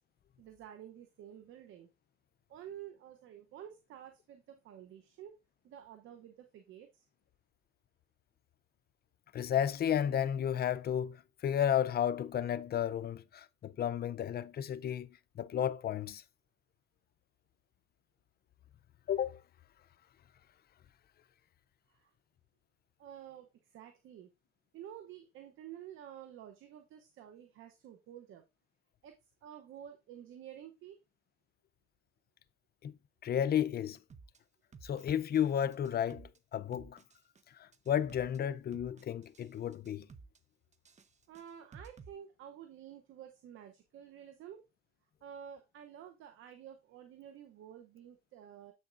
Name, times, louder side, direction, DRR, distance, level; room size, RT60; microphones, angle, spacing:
voice 1, 0.4-1.9 2.5-5.3 5.6-7.1 21.9-22.1 23.0-24.3 24.7-28.4 29.0-29.1 29.4-31.0 41.3-44.6 45.2-48.7, right 10 dB, 80° right, 0.8 m, -51 dB
voice 2, 9.3-16.2 19.1-19.4 32.8-32.9 33.2-34.0 34.8-37.0 37.5-40.1, left 9 dB, 50° left, 0.5 m, -33 dB
sound 1, 34.1-34.4 34.7-35.5 35.7-36.4 36.7-37.4 37.7-38.4 38.7-39.5 39.7-40.4 40.7-42.1, right 4 dB, 35° right, 0.7 m, -54 dB
7.7 x 6.4 x 2.5 m
cardioid pair, 90°, 20 cm